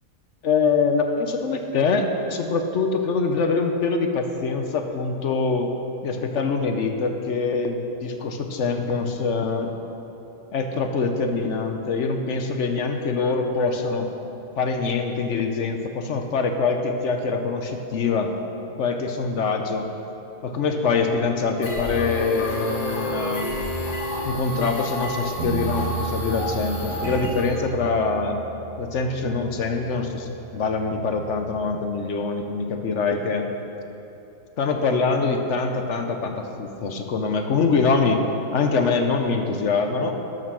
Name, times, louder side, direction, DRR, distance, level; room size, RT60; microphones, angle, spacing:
voice 1, 0.4-2.0 2.3-5.7 6.0-9.7 10.5-14.1 14.6-18.3 18.8-19.9 20.4-23.5 24.2-28.4 28.8-33.5 34.6-38.2 38.5-40.1, left 4 dB, 55° left, 5 dB, 1.0 m, -24 dB
Wind instrument woodwind instrument, 21.0-24.9, left 1 dB, 75° left, 1.6 m, -33 dB
sound 1, 21.6-27.5, left 1 dB, 90° left, 2.3 m, -31 dB
Bass guitar, 25.4-31.6, right 7 dB, 65° right, 0.6 m, -35 dB
12.0 x 6.8 x 6.2 m, 3.0 s
omnidirectional pair, 1.7 m